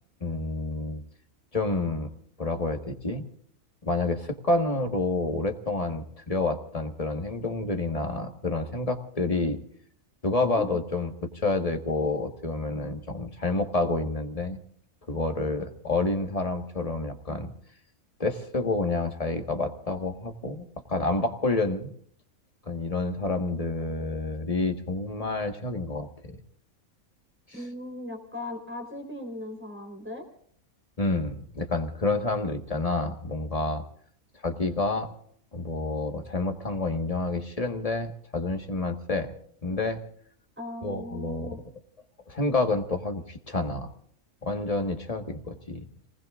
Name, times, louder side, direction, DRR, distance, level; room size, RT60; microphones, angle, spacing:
voice 1, 0.2-1.0 1.5-2.1 2.4-3.2 3.8-9.6 10.2-14.6 15.1-17.5 18.2-21.9 22.7-26.4 27.5-27.7 31.0-33.8 34.4-35.1 35.5-39.3 39.6-40.0 40.8-41.5 42.3-43.9 44.4-45.8, left 2 dB, 25° left, 5 dB, 1.6 m, -29 dB
voice 2, 27.5-30.3 40.6-41.6, left 1 dB, 10° right, 4 dB, 4.0 m, -38 dB
29.5 x 19.5 x 2.5 m, 0.63 s
omnidirectional pair, 1.5 m